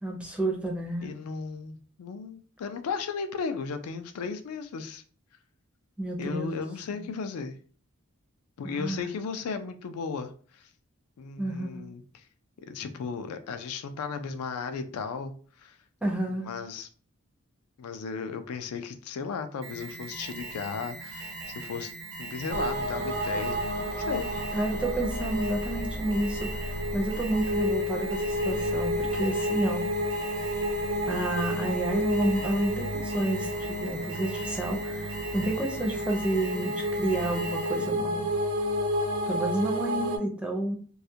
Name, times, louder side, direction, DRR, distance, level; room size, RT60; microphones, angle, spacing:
voice 1, 0.0-1.1 6.0-6.5 6.9-7.1 8.6-9.1 11.4-11.8 16.0-16.5 24.5-29.9 31.1-38.2 39.3-40.8, right 1 dB, 5° right, 0.4 m, -30 dB
voice 2, 1.0-5.0 6.2-7.6 8.6-10.7 11.2-12.2 12.7-15.8 16.3-16.9 17.8-21.9 22.2-24.6, left 5 dB, 75° left, 0.3 m, -35 dB
Alarm, 19.6-38.0, right 2 dB, 80° right, 0.9 m, -41 dB
sound 1, 22.5-40.2, equal, 65° right, 0.5 m, -31 dB
2.3 x 2.1 x 2.6 m
head